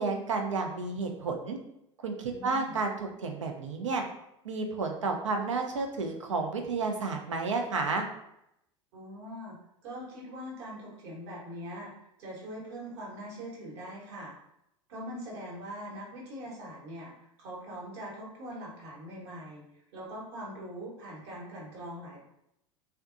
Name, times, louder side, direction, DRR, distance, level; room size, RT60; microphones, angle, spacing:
voice 1, 0.0-1.6 2.0-2.9 3.2-4.0 4.4-8.0, right 4 dB, 80° right, 3 dB, 0.5 m, -31 dB
voice 2, 2.3-2.8 8.9-9.6 9.8-11.9 12.2-14.3 14.9-19.6 19.9-22.2, equal, 60° right, -4 dB, 1.1 m, -42 dB
2.6 x 2.2 x 2.4 m, 0.80 s
figure-of-eight pair, 80°, 16 cm